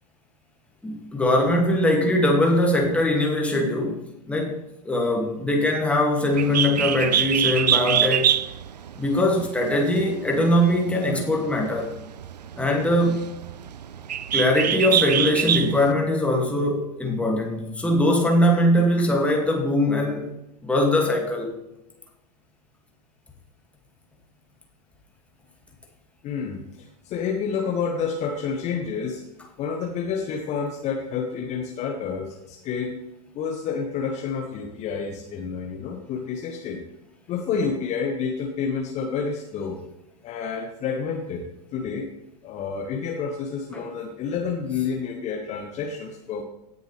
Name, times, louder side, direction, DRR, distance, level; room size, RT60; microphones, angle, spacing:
voice 1, 0.8-8.4 9.0-11.9 12.6-13.3 14.3-20.3 20.6-21.5 43.7-43.9, left 1 dB, 5° left, 0 dB, 2.3 m, -22 dB
Bird, 6.3-15.9, right 9 dB, 75° right, 0.5 m, -25 dB
voice 2, 26.2-29.2 29.6-33.0 33.3-36.8 37.3-39.8 40.2-42.1 42.4-46.4, left 6 dB, 35° left, 3 dB, 1.2 m, -29 dB
17.0 x 6.7 x 3.4 m, 0.92 s
figure-of-eight pair, 90°, 21 cm